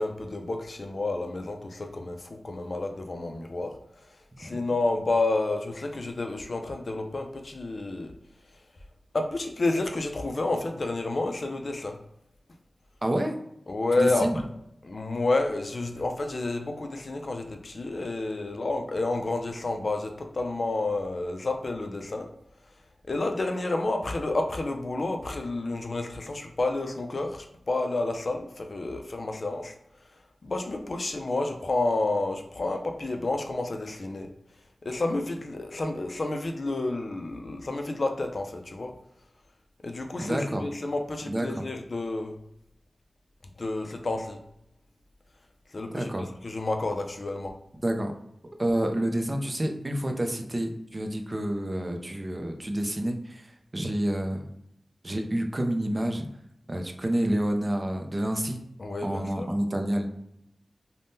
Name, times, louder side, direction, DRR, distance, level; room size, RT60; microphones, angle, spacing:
voice 1, 0.0-3.8 4.4-8.1 9.1-12.0 13.7-14.4 14.8-22.3 23.1-29.7 30.4-34.3 34.8-38.9 39.8-42.4 43.6-44.4 45.7-46.1 46.4-47.5 58.8-59.5, left 2 dB, 50° left, 4 dB, 0.3 m, -30 dB
voice 2, 13.0-13.3 14.0-14.5 40.2-40.6 41.3-41.6 45.9-46.2 47.8-48.1 48.6-54.5 55.0-56.3 56.7-58.6 59.0-60.1, right 1 dB, 30° right, 4 dB, 0.4 m, -28 dB
3.4 x 2.1 x 2.6 m, 0.78 s
wide cardioid pair, 85°, 0 cm